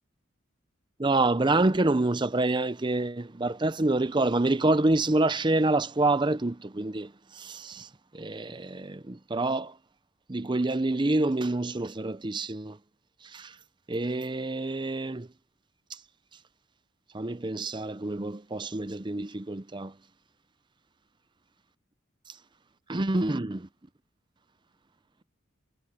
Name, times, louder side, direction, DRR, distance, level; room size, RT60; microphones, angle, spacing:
voice 1, 1.0-7.9 8.1-9.7 10.3-12.8 13.3-13.5 13.9-15.3 17.1-19.9 22.9-23.7, right 2 dB, 25° right, 0.6 m, -27 dB
head